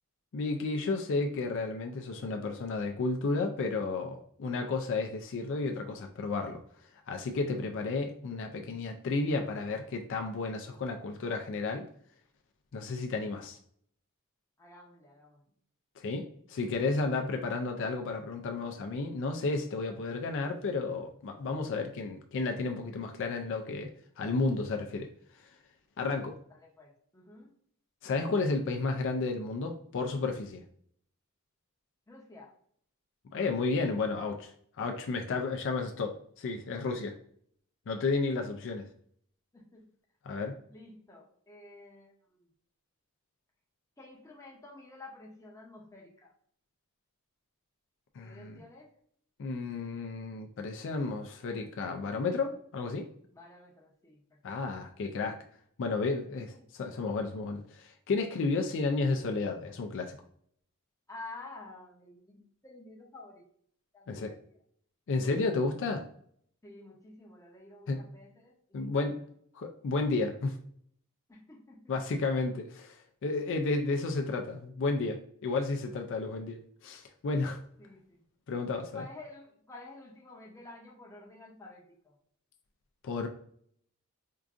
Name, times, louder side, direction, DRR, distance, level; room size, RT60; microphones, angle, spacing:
voice 1, 0.3-6.6 7.1-11.9 12.7-13.6 16.0-23.9 24.2-25.1 26.0-26.4 28.0-30.6 33.3-34.5 34.8-37.1 37.9-38.9 40.3-40.5 48.2-48.6 49.4-53.1 54.4-55.4 55.8-60.2 64.1-64.3 65.1-66.0 67.9-68.0 68.7-69.2 69.5-70.6 71.9-77.6 78.5-79.0 83.0-83.3, left 3 dB, 60° left, 4 dB, 0.4 m, -32 dB
voice 2, 14.6-15.5 26.5-27.5 32.1-32.5 39.5-39.9 40.7-42.5 44.0-46.3 48.2-49.0 53.3-54.6 56.5-56.6 61.1-63.4 63.9-64.5 66.6-68.9 71.3-71.9 76.1-76.2 77.8-78.2 78.9-82.2, left 2 dB, 15° left, -1 dB, 0.6 m, -51 dB
4.6 x 2.5 x 2.4 m, 0.64 s
head